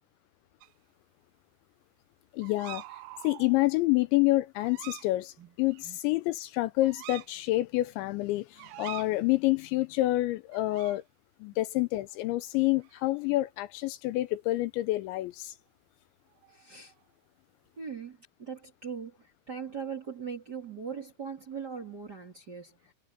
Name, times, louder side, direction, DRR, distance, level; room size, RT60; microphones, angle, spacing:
sound 1, 0.6-0.7 2.4-3.6 4.6-5.1 5.7-5.8 6.8-7.3 8.6-9.1 10.5-11.0 12.2-12.4 12.7-13.0 16.3-17.0, right 19 dB, 85° right, 3.2 m, -45 dB
voice 1, 2.3-2.8 3.2-11.0 11.4-15.5, left 18 dB, 80° left, 2.8 m, -28 dB
voice 2, 16.5-16.9 17.8-22.9, right 6 dB, 30° right, 2.1 m, -40 dB
omnidirectional pair, 5.6 m